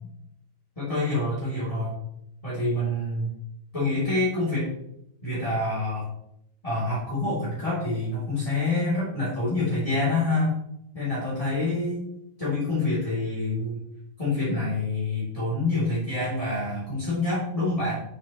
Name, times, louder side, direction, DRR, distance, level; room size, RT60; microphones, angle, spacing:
voice 1, 0.7-1.9 2.4-3.3 3.7-4.7 5.2-6.1 6.6-10.5 10.9-12.0 12.4-13.8 14.2-17.9, left 2 dB, 15° left, -9 dB, 1.2 m, -26 dB
8.6 x 7.6 x 2.9 m, 0.80 s
omnidirectional pair, 5.2 m